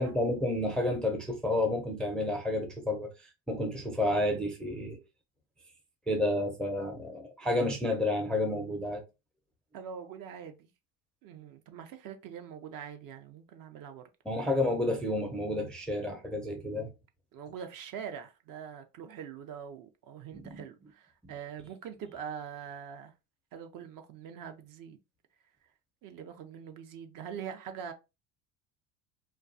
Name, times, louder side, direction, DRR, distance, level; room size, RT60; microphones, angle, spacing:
voice 1, 0.0-3.1 3.5-5.0 6.1-9.0 14.3-16.9 20.3-20.6 21.2-21.3, left 1 dB, ahead, 0.4 m, -30 dB
voice 2, 9.7-10.7 11.2-14.1 17.3-23.1 23.5-25.0 26.0-27.9, right 8 dB, 50° right, 0.6 m, -43 dB
2.3 x 2.3 x 2.5 m
supercardioid pair, 95°, 44 cm